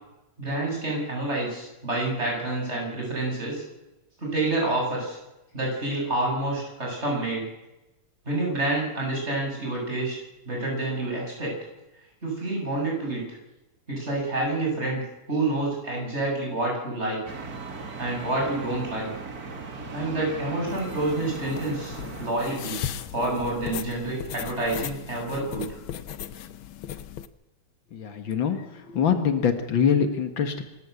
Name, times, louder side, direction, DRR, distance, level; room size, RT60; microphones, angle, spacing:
voice 1, 0.4-3.6 4.2-5.2 5.5-7.5 8.2-10.1 10.4-11.6 12.2-13.2 13.9-15.0 15.3-17.2 18.0-19.1 19.9-22.8 23.1-25.8, right 2 dB, 30° right, -2 dB, 8.3 m, -28 dB
sound 1, 17.2-22.3, right 4 dB, 50° right, 2.5 m, -38 dB
sound 2, 20.7-27.3, left 10 dB, 90° left, 1.7 m, -37 dB
voice 2, 27.9-30.6, left 7 dB, 75° left, 8 dB, 2.3 m, -24 dB
27.0 x 13.0 x 8.3 m, 0.99 s
omnidirectional pair, 2.2 m